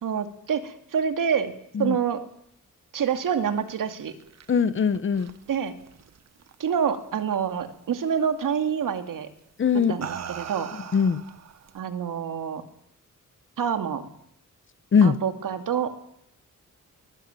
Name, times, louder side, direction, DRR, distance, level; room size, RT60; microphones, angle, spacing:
voice 1, 0.0-1.5 1.8-2.2 2.9-4.1 5.5-5.7 6.6-9.3 9.7-10.7 11.7-12.6 13.6-14.1 15.0-15.9, right 7 dB, 85° right, 8 dB, 2.4 m, -27 dB
sound 1, 3.9-6.8 7.2-7.6 8.8-9.0 9.7-11.8, right 8 dB, 55° right, 1.2 m, -40 dB
voice 2, 4.5-5.3 9.6-9.9 10.9-11.2 14.9-15.2, left 6 dB, 40° left, 16 dB, 0.9 m, -21 dB
22.5 x 19.5 x 9.0 m, 0.73 s
wide cardioid pair, 175°, 32 cm